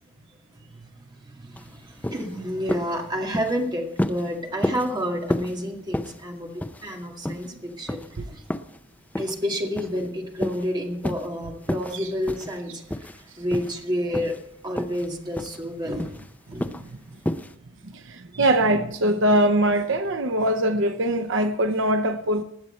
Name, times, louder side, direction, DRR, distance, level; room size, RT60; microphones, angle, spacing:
voice 1, 0.6-8.4 9.2-14.4 14.6-16.1 16.5-16.7 18.3-18.5, equal, 20° right, 2.0 m, -30 dB
sound 1, 1.6-1.7 2.0-2.3 2.7-3.0 3.3-3.6 4.0-4.3 4.6-4.9 5.3-5.6 5.9-6.2 6.6-7.0 7.2-7.5 7.9-8.1 8.5-8.8 9.2-9.4 9.8-10.1 10.4-10.7 11.0-11.3 11.6-12.0 12.3-12.6 12.9-13.2 13.5-13.8 14.1-14.4 14.8-15.1 15.3-15.6 16.0-16.3 16.6-16.9 17.3-17.5, left 1 dB, 10° left, 0.5 m, -30 dB
voice 2, 17.8-22.4, right 1 dB, 65° right, 0.8 m, -22 dB
19.5 x 7.8 x 4.3 m
head